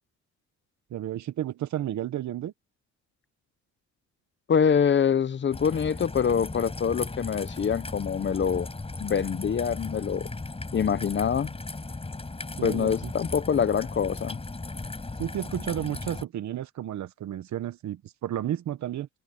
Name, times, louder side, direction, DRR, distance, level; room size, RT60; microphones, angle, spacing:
voice 1, 0.9-2.5 12.6-13.1 15.2-19.1, right 11 dB, 65° right, 1.2 m, -32 dB
voice 2, 4.5-8.7 9.0-10.3 10.7-11.6 12.6-14.4, left 7 dB, 40° left, 0.9 m, -25 dB
Raindrop / Trickle dribble, 5.5-16.2, left 3 dB, 20° left, 5.2 m, -37 dB
cardioid pair, 90°, 30 cm